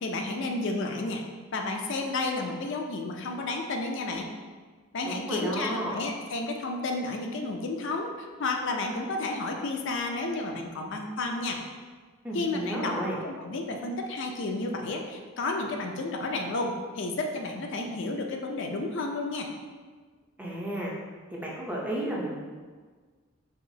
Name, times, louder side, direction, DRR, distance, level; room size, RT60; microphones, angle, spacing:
voice 1, 0.0-1.2 1.5-4.3 4.9-11.6 12.3-12.9 13.2-19.5, left 2 dB, 60° left, 2 dB, 0.4 m, -31 dB
voice 2, 5.0-6.0 12.2-13.2 20.4-20.9 21.3-22.4, right 1 dB, 10° right, -4 dB, 0.6 m, -32 dB
4.8 x 3.0 x 2.7 m, 1.5 s
head